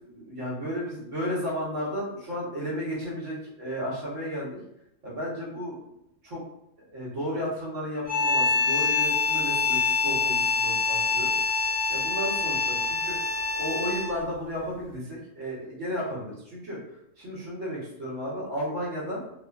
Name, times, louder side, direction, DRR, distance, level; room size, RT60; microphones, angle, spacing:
voice 1, 0.1-4.6 5.0-5.8 6.2-6.4 6.9-11.3 11.9-13.2 13.5-16.8 17.2-19.2, equal, 75° right, -6 dB, 1.5 m, -33 dB
sound 1, 8.1-14.3, left 5 dB, 50° left, 0.5 m, -25 dB
2.9 x 2.2 x 2.3 m, 0.81 s
omnidirectional pair, 1.3 m